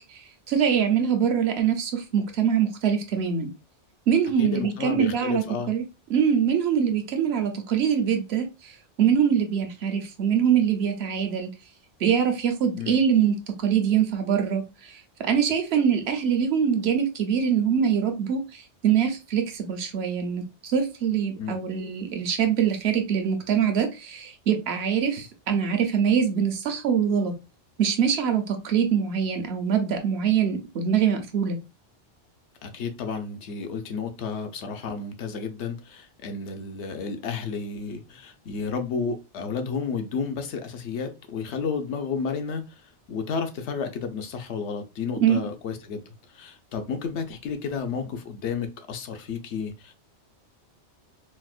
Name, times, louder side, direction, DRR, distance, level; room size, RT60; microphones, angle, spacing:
voice 1, 0.0-3.5 4.1-5.8 6.1-8.7 9.0-11.5 12.0-27.3 27.8-31.6 45.2-45.4, right 8 dB, 65° right, 0.9 m, -24 dB
voice 2, 4.4-5.7 12.8-13.0 21.4-21.6 32.6-46.0 46.3-49.9, left 5 dB, 75° left, 0.9 m, -32 dB
4.3 x 2.1 x 2.3 m
omnidirectional pair, 1.2 m